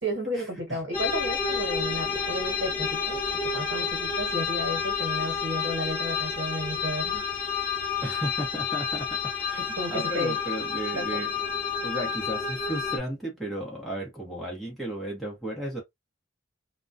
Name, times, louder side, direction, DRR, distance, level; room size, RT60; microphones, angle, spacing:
voice 1, 0.0-3.2 3.5-7.4 9.8-10.4 10.9-11.3, equal, 60° right, 1.2 m, -33 dB
sound 1, 0.9-13.0, left 6 dB, 30° left, 0.8 m, -30 dB
voice 2, 8.0-9.6 9.9-11.5 11.8-15.8, right 1 dB, ahead, 0.8 m, -34 dB
2.2 x 2.2 x 2.5 m
head